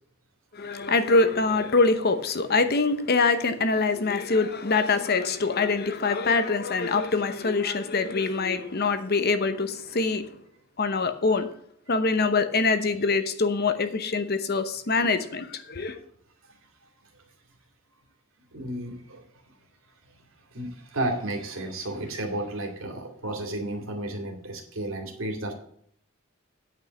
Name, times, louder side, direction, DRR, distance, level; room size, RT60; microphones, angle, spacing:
voice 1, 0.5-10.4 10.8-11.5 11.9-16.0, left 3 dB, 50° left, 0.9 m, -24 dB
voice 2, 18.5-19.5 20.0-20.2 20.5-25.5, right 1 dB, 70° right, 2.4 m, -33 dB
9.2 x 5.5 x 7.2 m
head